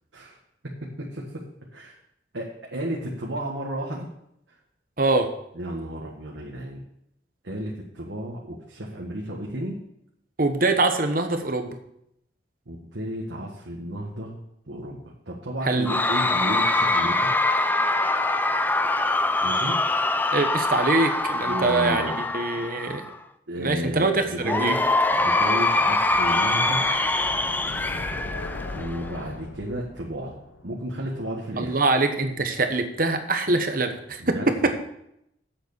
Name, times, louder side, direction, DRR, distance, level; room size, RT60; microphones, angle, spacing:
voice 1, 1.0-1.4 1.7-2.0 2.3-4.1 5.5-6.8 7.4-9.8 12.7-14.4 14.7-15.0 15.3-17.3 19.4-19.8 21.4-22.2 23.5-24.8 25.1-26.9 28.7-30.4 30.6-31.8 34.2-34.7, equal, 80° right, -2 dB, 1.6 m, -32 dB
voice 2, 5.0-5.3 10.4-11.8 15.6-16.0 20.3-22.0 22.3-23.0 23.6-24.8 31.6-34.3 34.6-34.7, right 3 dB, 50° right, 7 dB, 1.2 m, -24 dB
Cheering / Crowd, 15.9-23.2 24.4-29.2, left 2 dB, 10° left, 0.4 m, -24 dB
sound 1, 24.8-31.7, left 2 dB, 80° left, 0.9 m, -40 dB
7.9 x 6.9 x 8.1 m, 0.78 s
head